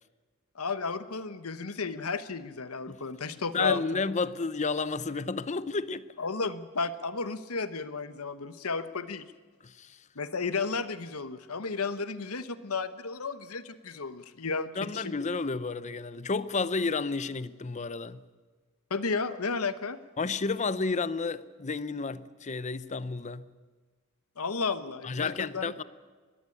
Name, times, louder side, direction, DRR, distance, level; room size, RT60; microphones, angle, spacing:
voice 1, 0.5-3.8 6.2-9.2 10.1-15.1 18.9-20.0 24.4-25.7, left 4 dB, 85° left, 1.1 m, -33 dB
voice 2, 3.5-6.1 9.6-10.0 14.8-18.2 20.2-23.5 25.0-25.8, left 4 dB, 35° left, 0.7 m, -31 dB
20.5 x 15.0 x 9.8 m
head